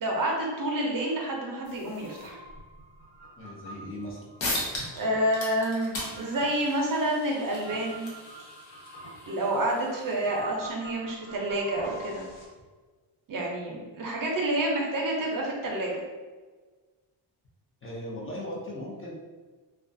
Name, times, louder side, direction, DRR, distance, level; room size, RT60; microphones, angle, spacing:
voice 1, 0.0-2.4 4.9-8.1 9.3-12.2 13.3-16.0, right 1 dB, 45° right, -1 dB, 0.5 m, -29 dB
sound 1, 1.6-12.5, right 1 dB, 85° left, 1.3 m, -46 dB
voice 2, 3.4-4.2 17.8-19.1, left 1 dB, 25° left, -5 dB, 0.5 m, -38 dB
sound 2, 4.0-4.1 4.4-5.0 5.3-10.4, left 1 dB, 65° left, 0.9 m, -37 dB
2.3 x 2.3 x 2.5 m, 1.4 s
cardioid pair, 120°, 49 cm